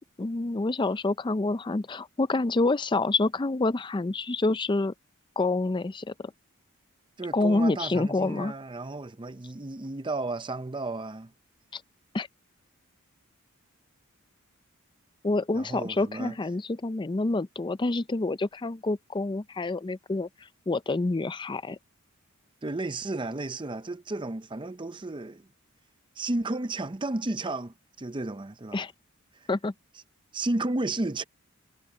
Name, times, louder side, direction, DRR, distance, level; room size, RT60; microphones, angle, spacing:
voice 1, 0.2-4.9 5.4-6.3 7.3-8.5 11.7-11.8 12.1-12.3 15.2-20.3 20.7-21.8 28.7-28.9 29.5-29.7, left 2 dB, 20° left, 0.4 m, -27 dB
voice 2, 7.2-11.3 15.5-16.4 22.6-25.5 26.2-28.8 29.3-29.5 30.3-31.2, right 2 dB, 20° right, 0.6 m, -33 dB
head